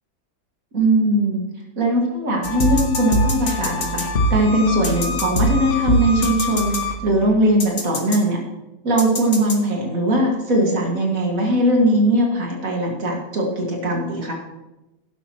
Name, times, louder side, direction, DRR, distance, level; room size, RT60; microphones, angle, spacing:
voice 1, 0.7-1.4 1.8-4.0 4.3-8.4 8.8-14.3, right 1 dB, 90° right, -1 dB, 2.6 m, -20 dB
sound 1, 2.4-7.2 7.6-8.2 9.0-9.6, equal, 60° left, 1.5 m, -23 dB
12.0 x 11.5 x 3.1 m, 1.0 s
omnidirectional pair, 1.4 m